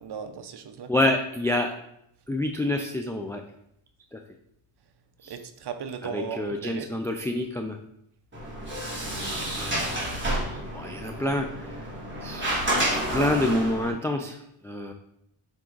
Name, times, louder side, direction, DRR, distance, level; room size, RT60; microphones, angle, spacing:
voice 1, 0.0-0.9 5.3-6.9, right 6 dB, 55° right, 8 dB, 0.8 m, -37 dB
voice 2, 0.9-1.7 2.3-3.4 4.1-4.2 5.2-5.4 6.0-7.8 9.5-11.9 12.2-14.9, left 1 dB, 5° left, 3 dB, 0.4 m, -28 dB
Sliding door, 8.3-13.9, right 1 dB, 25° right, 2.4 m, -30 dB
7.6 x 3.7 x 3.9 m, 0.76 s
wide cardioid pair, 105°, 49 cm